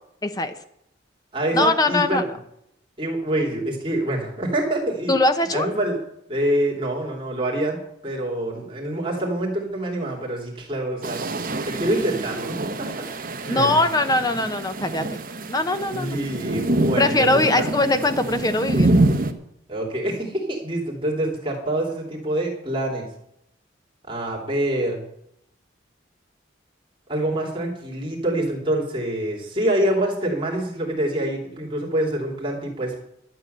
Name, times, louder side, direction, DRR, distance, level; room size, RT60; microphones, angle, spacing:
voice 1, 0.2-0.5 1.5-2.2 5.1-5.7 13.5-15.2 15.5-16.2 17.0-18.9, left 2 dB, 20° left, 9 dB, 0.8 m, -21 dB
voice 2, 1.3-2.4 3.0-5.1 5.5-6.0 6.3-11.2 11.6-12.9 13.4-13.9 15.9-17.6 19.7-23.1 24.1-25.0 27.1-33.0, right 1 dB, 25° right, -2 dB, 3.2 m, -26 dB
sound 1, 11.0-19.3, right 2 dB, 45° right, 1.1 m, -26 dB
12.5 x 7.8 x 8.0 m, 0.76 s
head